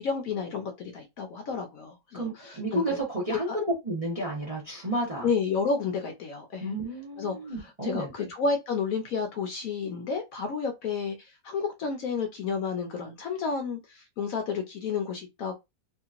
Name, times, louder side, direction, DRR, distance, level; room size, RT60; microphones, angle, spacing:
voice 1, 0.0-3.0 3.5-3.6 5.2-6.6 7.2-15.5, left 5 dB, 70° left, 0.9 m, -31 dB
voice 2, 2.1-5.3 6.6-8.3, right 1 dB, 30° right, 0.7 m, -31 dB
2.9 x 2.8 x 2.4 m
omnidirectional pair, 1.8 m